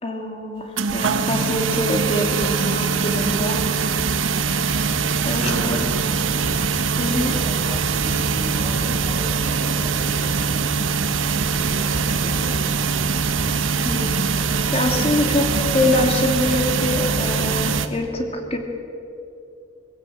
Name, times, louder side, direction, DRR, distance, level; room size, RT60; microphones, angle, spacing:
voice 1, 0.0-3.6 5.2-5.9 7.0-7.3 13.8-18.6, left 1 dB, 30° left, 3 dB, 2.4 m, -24 dB
sound 1, 0.8-17.9, right 5 dB, 85° right, 1.1 m, -22 dB
voice 2, 5.3-5.9 7.2-10.6 11.4-12.6, right 1 dB, 15° right, 0 dB, 4.1 m, -37 dB
22.0 x 15.5 x 7.9 m, 2.7 s
head